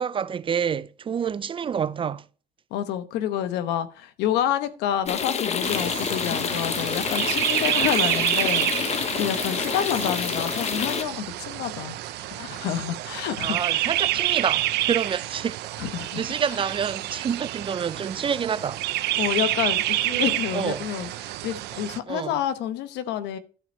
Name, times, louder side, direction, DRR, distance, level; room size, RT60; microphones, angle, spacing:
voice 1, 0.0-2.2 13.4-15.6 16.2-18.8 20.1-20.9 22.1-22.4, right 7 dB, 30° right, 0.4 m, -28 dB
voice 2, 2.7-14.2 15.8-16.2 19.2-23.4, left 10 dB, 90° left, 1.0 m, -29 dB
sound 1, 5.1-11.0, left 6 dB, 40° left, 1.0 m, -28 dB
sound 2, 5.6-22.0, right 16 dB, 85° right, 0.6 m, -28 dB
12.0 x 4.6 x 5.3 m
cardioid pair, 110°, 17 cm